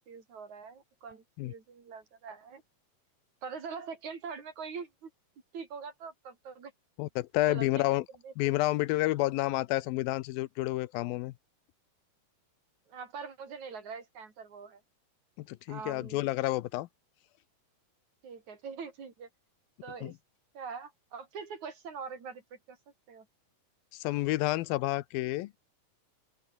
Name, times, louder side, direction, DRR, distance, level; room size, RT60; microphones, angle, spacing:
voice 1, 0.0-2.6 3.4-5.1 5.5-6.7 7.5-7.8 8.2-8.3 12.9-14.8 15.7-16.3 18.2-19.3 19.8-20.2 20.5-22.8 23.1-23.3, right 5 dB, 55° right, 4.8 m, -43 dB
voice 2, 7.0-8.0 8.4-11.3 15.4-16.9 20.0-20.1 23.9-25.5, left 18 dB, 85° left, 2.6 m, -30 dB
open air
omnidirectional pair, 4.1 m